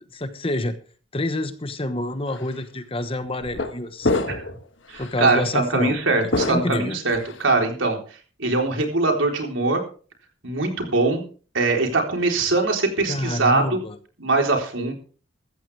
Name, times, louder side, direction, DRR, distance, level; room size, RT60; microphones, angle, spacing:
voice 1, 0.1-0.7 1.1-4.3 5.0-6.0 6.5-7.0 13.1-14.0, left 1 dB, 30° left, 10 dB, 1.1 m, -28 dB
sound 1, 2.3-2.5 3.4-3.7 4.0-4.6 4.9-5.1 6.3-7.4, left 2 dB, 65° left, 1.5 m, -26 dB
voice 2, 4.9-8.0 8.4-9.8 10.4-11.2 11.5-13.8 14.2-14.9, right 3 dB, 80° right, 2 dB, 3.8 m, -22 dB
14.5 x 14.0 x 3.4 m, 0.39 s
head